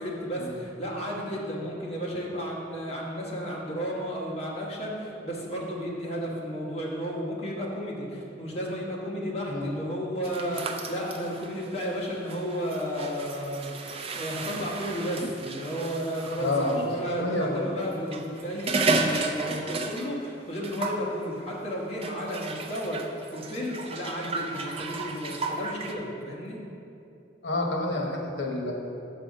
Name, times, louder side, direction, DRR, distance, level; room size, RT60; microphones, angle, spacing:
voice 1, 0.0-13.7 14.1-26.6, equal, 35° left, -4 dB, 1.3 m, -33 dB
sound 1, 10.2-16.8 17.9-20.3 20.5-21.1 22.0-25.9, right 3 dB, 30° right, 0.5 m, -33 dB
voice 2, 16.4-16.9 17.2-17.7 27.4-28.7, left 2 dB, 75° left, 0 dB, 1.1 m, -28 dB
6.8 x 5.6 x 5.3 m, 2.7 s
head